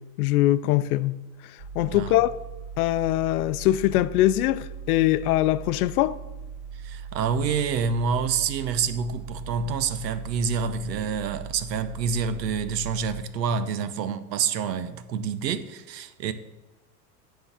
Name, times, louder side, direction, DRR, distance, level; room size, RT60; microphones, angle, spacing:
voice 1, 0.2-1.2 1.4-2.3 2.8-6.2, left 15 dB, 65° left, 0.6 m, -22 dB
sound 1, 1.6-13.2, right 6 dB, 50° right, 3.0 m, -40 dB
voice 2, 6.7-16.3, right 6 dB, 85° right, 0.9 m, -27 dB
9.6 x 3.9 x 7.1 m
hypercardioid pair, 115°, 49 cm